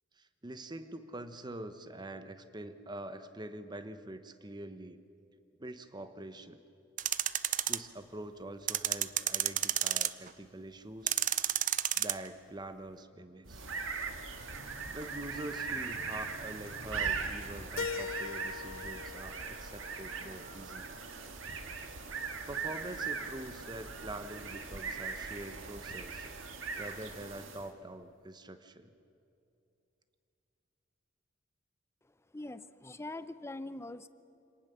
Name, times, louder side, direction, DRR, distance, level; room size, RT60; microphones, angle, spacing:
voice 1, 0.2-5.0 5.6-6.6 7.7-11.1 12.0-13.7 14.9-21.0 22.5-26.3 26.8-28.9, right 1 dB, 20° right, 10 dB, 1.0 m, -45 dB
sound 1, 7.0-7.8 8.7-10.3 11.1-12.1, right 12 dB, 40° right, 0.5 m, -30 dB
sound 2, 13.4-27.8, right 5 dB, 80° right, 1.8 m, -40 dB
Keyboard (musical), 17.8-20.7, left 7 dB, 85° left, 0.4 m, -42 dB
voice 2, 32.3-34.1, left 2 dB, 15° left, 14 dB, 0.6 m, -42 dB
26.5 x 18.5 x 6.9 m, 2.7 s
head